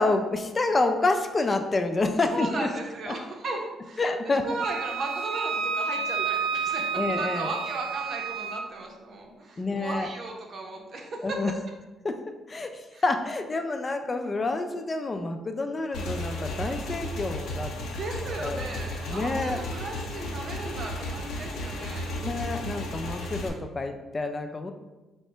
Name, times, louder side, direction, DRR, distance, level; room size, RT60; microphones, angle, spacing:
voice 1, 0.0-2.7 3.1-3.2 4.0-4.5 6.9-7.5 9.6-10.1 11.2-11.5 12.0-12.2 12.5-17.7 18.4-18.7 19.1-19.6 22.2-24.7, left 3 dB, 30° left, 6 dB, 0.3 m, -28 dB
voice 2, 2.3-11.4 12.9-13.0 17.9-22.1, right 2 dB, 50° right, 1 dB, 0.7 m, -36 dB
Wind instrument woodwind instrument, 4.6-8.7, right 5 dB, 75° right, 0.3 m, -30 dB
Motorcycle / Engine, 15.9-23.5, left 1 dB, 75° left, 0.6 m, -34 dB
3.6 x 2.1 x 4.4 m, 1.1 s
cardioid pair, 90°, 0 cm